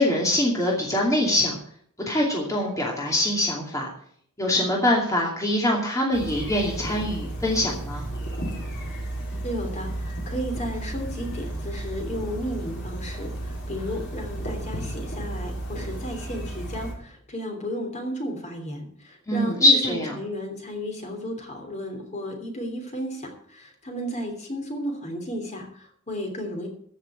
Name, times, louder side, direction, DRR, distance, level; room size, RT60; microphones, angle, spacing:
voice 1, 0.0-1.5 2.1-3.9 4.4-8.1 19.3-20.1, left 1 dB, 15° left, -3 dB, 2.6 m, -23 dB
sound 1, 6.1-16.9, right 1 dB, 55° left, 4.0 m, -33 dB
voice 2, 9.4-26.7, equal, 35° left, 3 dB, 3.1 m, -33 dB
15.0 x 6.6 x 7.3 m, 0.62 s
head